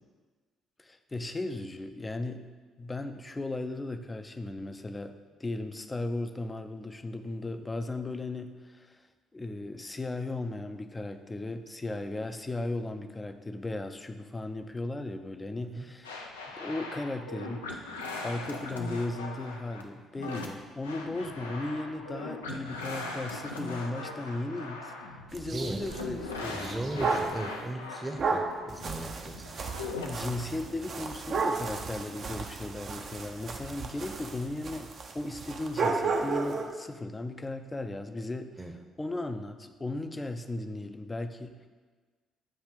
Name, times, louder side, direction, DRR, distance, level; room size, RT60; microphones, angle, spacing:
voice 1, 0.8-2.4 2.8-9.0 9.3-17.7 18.2-24.9 25.3-27.2 30.0-41.7, left 2 dB, 20° left, 8 dB, 0.5 m, -36 dB
sound 1, 16.0-30.1, left 3 dB, 90° left, 0.4 m, -40 dB
sound 2, 25.3-27.4 28.2-36.8, right 4 dB, 50° right, 0.5 m, -34 dB
voice 2, 25.5-25.8 26.5-29.6 38.6-38.7, right 1 dB, 20° right, 3 dB, 0.7 m, -37 dB
7.5 x 2.6 x 5.0 m, 1.4 s
hypercardioid pair, 50°, 0 cm